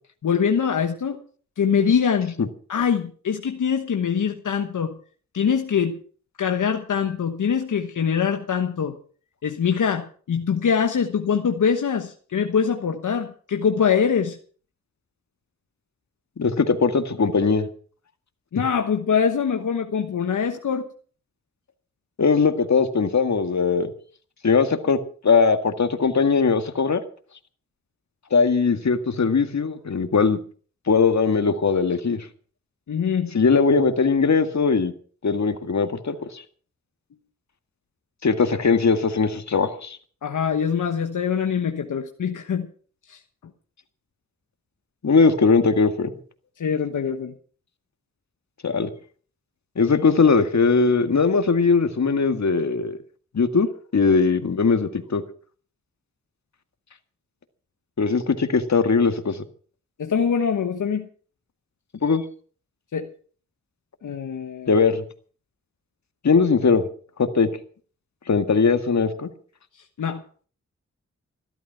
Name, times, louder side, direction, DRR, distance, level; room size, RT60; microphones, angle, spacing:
voice 1, 0.2-1.2 1.6-2.3 2.7-4.9 5.3-6.0 6.4-9.0 9.4-14.4 18.5-20.9 32.9-33.3 40.2-42.7 43.1-43.2 46.6-47.3 60.0-61.1 62.9-63.1 64.0-64.7 70.0-70.2, left 7 dB, 85° left, 5 dB, 1.2 m, -23 dB
voice 2, 16.4-17.7 22.2-23.9 24.4-25.0 25.2-27.0 28.3-30.4 30.9-32.3 33.3-34.9 35.2-36.4 38.2-40.0 45.0-46.1 48.6-48.9 49.8-53.0 53.3-53.7 53.9-55.2 58.0-59.4 62.0-62.2 64.7-65.0 66.2-66.9 67.2-67.5 68.3-69.3, left 5 dB, 65° left, 8 dB, 2.0 m, -20 dB
14.5 x 12.5 x 5.8 m, 0.43 s
cardioid pair, 45°, 30 cm